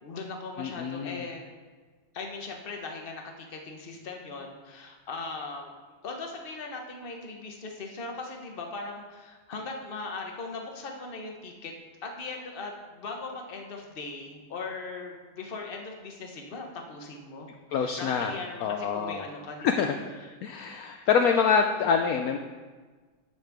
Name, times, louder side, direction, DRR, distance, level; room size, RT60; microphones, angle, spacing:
voice 1, 0.0-1.4 2.1-5.7 6.0-11.7 12.0-19.7 20.2-20.3 20.8-21.1, left 3 dB, 40° left, 2 dB, 0.9 m, -39 dB
voice 2, 0.6-1.2 17.7-19.3 19.6-20.0 20.4-22.4, left 6 dB, 75° left, 4 dB, 0.8 m, -26 dB
10.0 x 7.5 x 3.5 m, 1.4 s
omnidirectional pair, 2.0 m